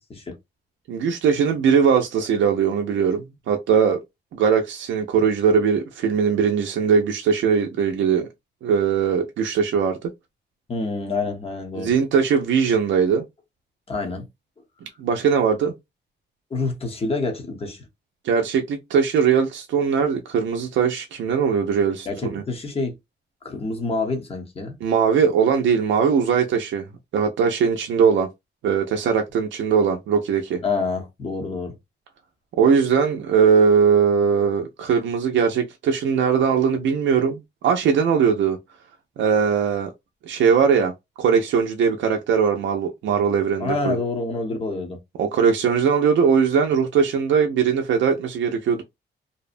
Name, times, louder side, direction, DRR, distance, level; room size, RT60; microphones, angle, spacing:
voice 1, 0.9-4.0 4.3-8.3 8.6-10.0 11.8-13.2 15.0-15.7 18.2-22.4 24.8-26.9 27.1-28.3 28.6-30.6 32.6-38.6 39.2-39.9 40.2-40.9 41.2-44.0 45.2-48.8, right 6 dB, 90° right, 0.4 m, -20 dB
voice 2, 10.7-11.9 13.9-14.3 16.5-17.9 22.1-22.9 23.4-24.8 30.6-31.8 43.6-45.0, left 3 dB, 30° left, 0.8 m, -27 dB
2.7 x 2.0 x 2.4 m
wide cardioid pair, 125°, 19 cm